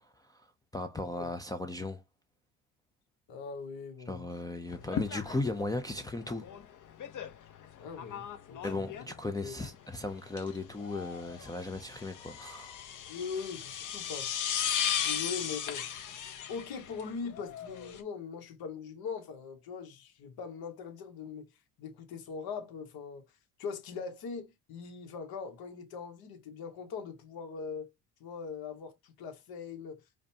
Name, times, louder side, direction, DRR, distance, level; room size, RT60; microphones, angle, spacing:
voice 1, 0.2-0.5 0.7-2.0 4.1-6.5 8.6-12.8, left 2 dB, 10° left, 0.5 m, -36 dB
voice 2, 3.3-4.3 7.8-8.9 9.4-9.6 13.1-14.4 14.9-15.8 16.5-21.5 21.8-23.3 23.6-27.9 28.2-30.0, left 5 dB, 65° left, 1.3 m, -41 dB
sound 1, 4.7-18.0, left 9 dB, 50° left, 0.9 m, -37 dB
5.0 x 2.2 x 2.8 m
supercardioid pair, 85°, 40 cm